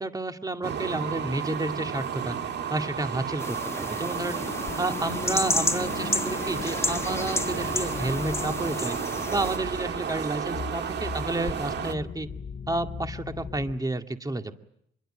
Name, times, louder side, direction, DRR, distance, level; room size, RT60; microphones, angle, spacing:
voice 1, 0.0-2.4 2.7-4.4 4.8-9.0 9.3-12.3 12.7-14.6, right 2 dB, 20° right, 6 dB, 2.1 m, -31 dB
sound 1, 0.6-11.9, right 7 dB, 60° right, 1.7 m, -33 dB
sound 2, 3.4-9.6, left 2 dB, 15° left, 1.7 m, -31 dB
sound 3, 4.2-13.8, left 6 dB, 45° left, 1.8 m, -38 dB
25.5 x 22.5 x 8.9 m, 0.74 s
cardioid pair, 90°, 20 cm